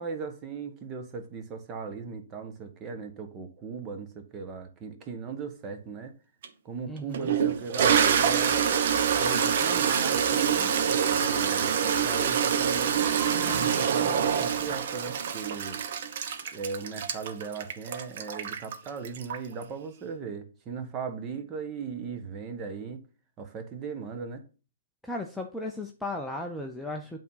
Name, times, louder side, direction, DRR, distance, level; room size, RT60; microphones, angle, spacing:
voice 1, 0.0-6.1 6.6-8.7 9.1-10.7 11.1-13.1 13.5-15.8 16.5-23.0 23.4-24.4, right 5 dB, 20° right, 1.2 m, -38 dB
Toilet flush, 6.4-6.5 7.1-19.6, right 7 dB, 50° right, 1.1 m, -26 dB
voice 2, 6.9-7.3 25.0-27.2, left 2 dB, ahead, 0.6 m, -36 dB
8.4 x 3.6 x 5.5 m
hypercardioid pair, 145°, 0 cm